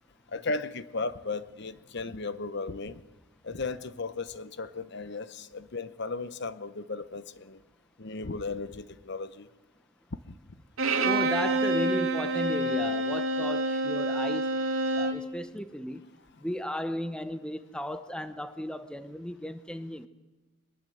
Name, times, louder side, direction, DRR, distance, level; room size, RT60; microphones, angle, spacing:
voice 1, 0.3-3.0 3.4-7.6 8.0-9.5, left 3 dB, 55° left, 13 dB, 0.9 m, -35 dB
Bowed string instrument, 10.8-15.3, right 1 dB, 80° right, 2.4 m, -27 dB
voice 2, 11.0-14.5 14.9-16.0 16.4-20.1, equal, 5° left, 11 dB, 0.9 m, -35 dB
24.0 x 21.5 x 7.9 m, 1.1 s
head